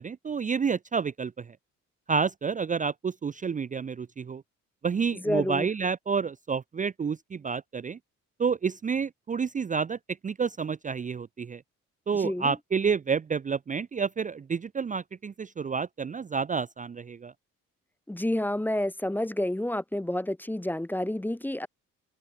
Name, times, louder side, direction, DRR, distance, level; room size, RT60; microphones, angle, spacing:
voice 1, 0.0-1.6 2.1-4.4 4.8-8.0 8.4-11.6 12.1-17.3, right 5 dB, 25° right, 0.5 m, -29 dB
voice 2, 5.1-5.7 12.1-12.5 18.1-21.7, left 1 dB, 5° left, 0.8 m, -29 dB
cardioid pair, 90°, 30 cm